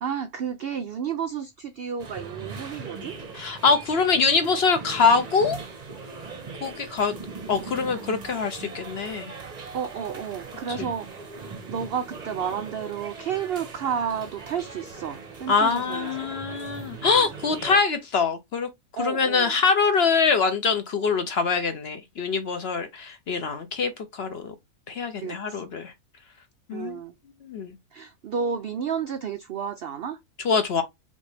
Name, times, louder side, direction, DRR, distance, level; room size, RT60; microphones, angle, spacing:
voice 1, 0.0-3.2 9.7-11.1 11.7-16.4 17.1-17.3 19.0-19.6 25.2-25.6 26.7-27.1 27.9-30.2, right 7 dB, 85° right, 0.5 m, -31 dB
sound 1, 2.0-17.8, right 4 dB, 35° right, 0.7 m, -40 dB
voice 2, 3.3-5.6 6.6-7.1 7.5-9.3 10.8-10.9 15.5-18.7 19.0-24.5 24.9-25.9 26.7-27.0 27.5-27.7 30.4-30.8, left 5 dB, 60° left, 0.7 m, -24 dB
5.2 x 2.5 x 3.3 m
omnidirectional pair, 1.6 m